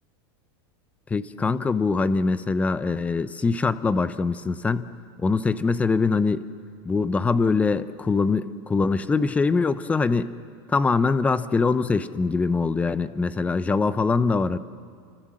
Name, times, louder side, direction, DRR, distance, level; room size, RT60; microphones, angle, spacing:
voice 1, 1.1-4.9 5.2-6.4 6.8-10.3 10.7-14.6, left 4 dB, 10° left, 14 dB, 0.7 m, -23 dB
29.5 x 25.5 x 7.6 m, 2.2 s
supercardioid pair, 155°, 14 cm